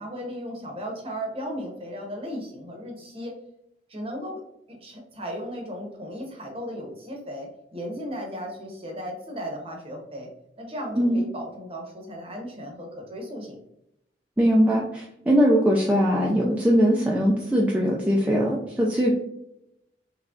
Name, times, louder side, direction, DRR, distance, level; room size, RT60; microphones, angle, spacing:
voice 1, 0.0-3.4 3.9-4.4 4.7-10.3 10.6-13.6, equal, 30° right, 1 dB, 0.8 m, -36 dB
voice 2, 14.4-19.1, equal, 10° right, -4 dB, 0.4 m, -21 dB
3.6 x 3.1 x 2.4 m, 0.82 s
head